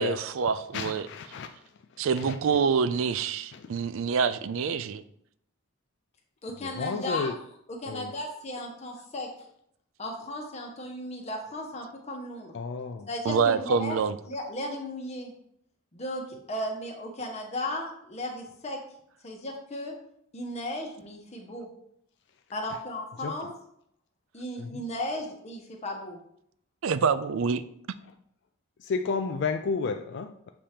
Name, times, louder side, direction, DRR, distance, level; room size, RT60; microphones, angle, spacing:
voice 1, 0.0-1.1 2.0-5.0 13.2-14.2 26.8-27.6, right 5 dB, 65° right, 14 dB, 0.4 m, -26 dB
voice 2, 0.7-1.5 2.0-2.4 3.5-3.7 6.6-7.4 7.9-8.1 12.5-13.1 23.2-23.4 24.6-24.8 28.8-30.5, left 5 dB, 55° left, 6 dB, 0.3 m, -32 dB
voice 3, 6.4-7.3 7.7-9.3 10.0-12.5 13.1-14.0 14.3-15.3 15.9-18.8 19.2-19.9 20.3-21.7 22.5-23.5 24.3-26.2, left 1 dB, 30° left, 1 dB, 1.0 m, -35 dB
7.1 x 2.9 x 5.0 m, 0.72 s
head